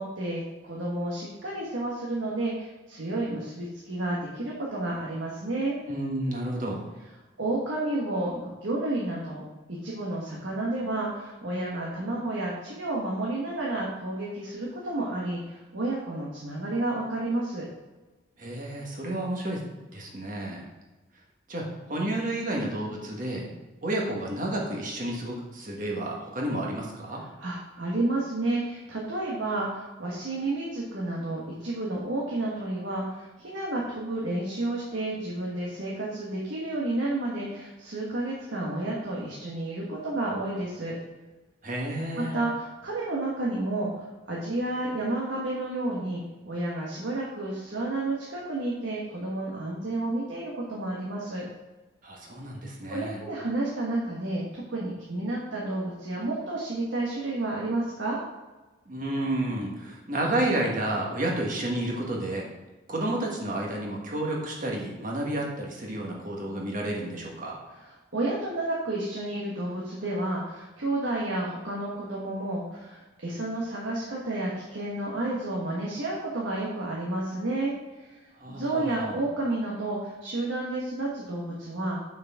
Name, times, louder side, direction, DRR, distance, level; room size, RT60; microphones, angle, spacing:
voice 1, 0.0-5.7 7.4-9.4 9.7-17.7 27.4-41.0 42.2-51.4 52.9-58.2 68.1-77.7 78.0-78.2 78.5-82.2, right 2 dB, 75° right, -4 dB, 1.4 m, -31 dB
voice 2, 5.9-6.9 18.4-19.6 19.9-20.6 21.5-23.5 23.8-27.2 41.6-42.4 52.0-53.2 58.9-62.5 62.9-67.6 78.4-79.2, right 1 dB, 40° right, -1 dB, 1.5 m, -31 dB
6.7 x 6.3 x 3.6 m, 1.2 s
head